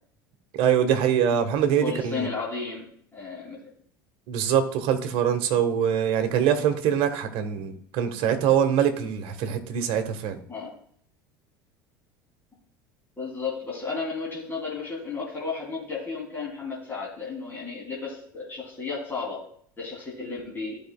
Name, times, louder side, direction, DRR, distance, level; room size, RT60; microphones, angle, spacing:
voice 1, 0.5-2.3 4.3-10.4, right 8 dB, 55° right, 1.2 m, -24 dB
voice 2, 1.8-2.9 3.1-3.6 10.5-10.7 13.2-19.4 19.8-20.8, left 4 dB, 20° left, 2.7 m, -33 dB
15.0 x 5.2 x 2.2 m
figure-of-eight pair, 70°, 11 cm